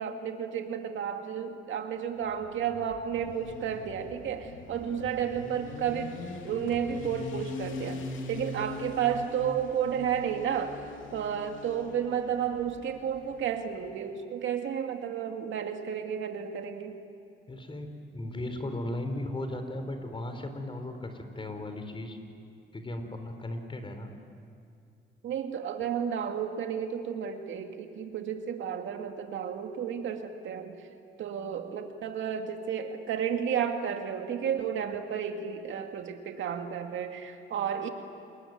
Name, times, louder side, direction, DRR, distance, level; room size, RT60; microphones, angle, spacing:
voice 1, 0.0-6.2 6.4-10.8 11.1-17.0 25.2-30.8 31.2-37.9, right 8 dB, 75° right, 5 dB, 2.2 m, -32 dB
Motorcycle, 2.2-13.9, left 3 dB, 80° left, 3.0 m, -42 dB
voice 2, 17.5-22.2 22.7-24.1, left 1 dB, 25° left, 6 dB, 4.0 m, -36 dB
28.0 x 21.0 x 9.5 m, 2.5 s
cardioid pair, 90°, 20 cm